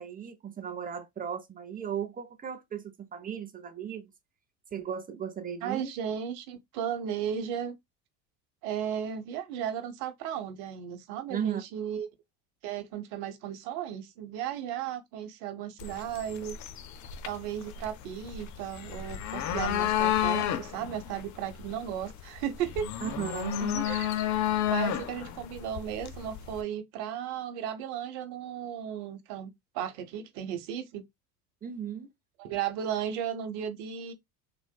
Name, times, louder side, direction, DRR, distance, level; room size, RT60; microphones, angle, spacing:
voice 1, 0.0-4.1 4.7-5.9 11.3-11.6 23.0-23.9 31.6-32.1, right 8 dB, 20° right, 0.7 m, -36 dB
voice 2, 5.6-7.8 8.6-12.1 12.6-16.6 17.2-22.9 23.9-24.1 24.7-29.5 29.7-31.0 32.4-34.1, right 9 dB, 60° right, 1.0 m, -35 dB
sound 1, 15.8-26.6, left 10 dB, 40° left, 0.6 m, -32 dB
3.7 x 2.4 x 2.2 m
hypercardioid pair, 80°, 47 cm